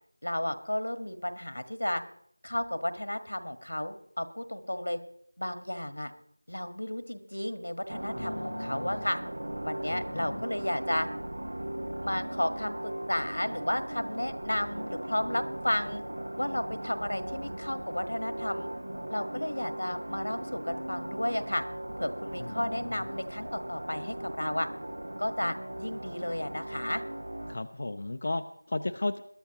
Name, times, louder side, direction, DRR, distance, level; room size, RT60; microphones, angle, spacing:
voice 1, 0.2-2.0 2.4-5.0 5.4-6.1 6.5-9.2 9.6-11.1 12.0-16.0 16.4-18.7 19.1-21.6 22.0-24.7 25.2-27.0, left 1 dB, 85° left, 9 dB, 1.5 m, -33 dB
sound 1, 7.9-27.6, right 1 dB, 60° right, 0.5 m, -38 dB
voice 2, 8.1-9.1 9.8-10.4 22.4-23.0 27.5-29.2, left 2 dB, 30° left, 8 dB, 0.5 m, -35 dB
21.5 x 12.0 x 3.0 m, 0.70 s
figure-of-eight pair, 175°, 0 cm